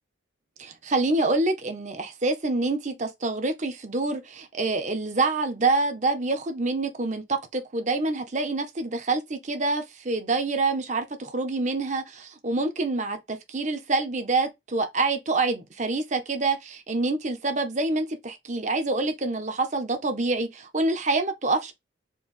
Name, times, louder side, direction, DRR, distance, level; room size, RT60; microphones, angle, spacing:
voice 1, 0.6-21.7, right 3 dB, 35° right, 0.8 m, -26 dB
4.5 x 2.3 x 3.6 m
head